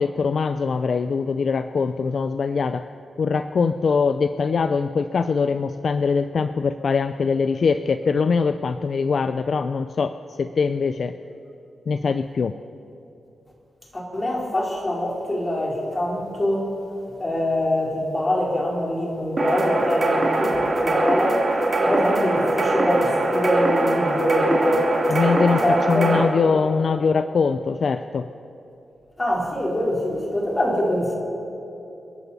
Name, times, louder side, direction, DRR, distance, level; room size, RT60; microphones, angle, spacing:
voice 1, 0.0-2.9 3.2-11.1 11.9-12.5 25.1-25.6 25.9-28.3, left 5 dB, 55° left, 10 dB, 0.4 m, -22 dB
voice 2, 13.9-16.7 17.2-21.4 21.8-24.9 25.6-26.1 29.2-31.1, left 1 dB, 25° left, -3 dB, 3.8 m, -24 dB
sound 1, 19.4-26.2, right 2 dB, 40° right, 2.5 m, -22 dB
28.5 x 11.0 x 4.1 m, 2.9 s
wide cardioid pair, 105°, 0 cm